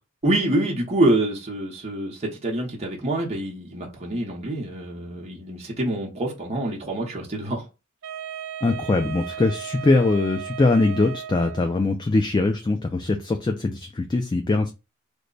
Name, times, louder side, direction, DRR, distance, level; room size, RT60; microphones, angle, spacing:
voice 1, 0.2-7.7, right 1 dB, 30° right, 0.8 m, -26 dB
Wind instrument woodwind instrument, 8.0-11.9, right 9 dB, 65° right, 0.4 m, -36 dB
voice 2, 8.6-14.7, left 3 dB, 20° left, 0.3 m, -22 dB
3.2 x 2.1 x 3.8 m
head